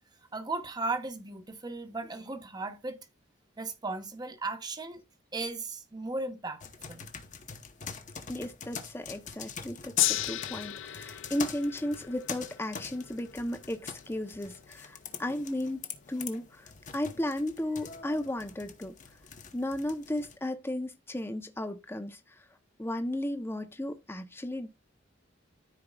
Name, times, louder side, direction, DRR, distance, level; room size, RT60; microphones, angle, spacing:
voice 1, 0.3-3.0 3.6-5.0 5.3-6.6 6.9-7.1, right 3 dB, 20° right, 1.1 m, -36 dB
sound 1, 6.6-20.4, left 6 dB, 40° left, 0.9 m, -44 dB
voice 2, 8.3-15.8 16.1-18.9 19.5-22.2 22.8-24.7, left 1 dB, 10° left, 0.7 m, -34 dB
Gong, 10.0-16.3 17.1-17.2, left 16 dB, 75° left, 0.4 m, -36 dB
13.5 x 4.6 x 2.3 m
head